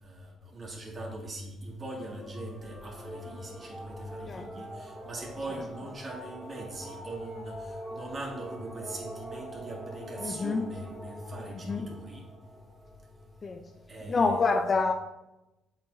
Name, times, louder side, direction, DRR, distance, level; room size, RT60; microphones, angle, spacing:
voice 1, 0.0-12.2 13.9-14.5, right 1 dB, 45° right, -1 dB, 2.0 m, -41 dB
sound 1, 1.9-13.8, equal, 10° right, 2.0 m, -44 dB
voice 2, 10.2-10.6 11.7-11.9 13.4-13.6 14.1-14.9, left 4 dB, 40° left, 5 dB, 0.5 m, -27 dB
7.8 x 4.5 x 2.7 m, 0.96 s
hypercardioid pair, 55°, 0 cm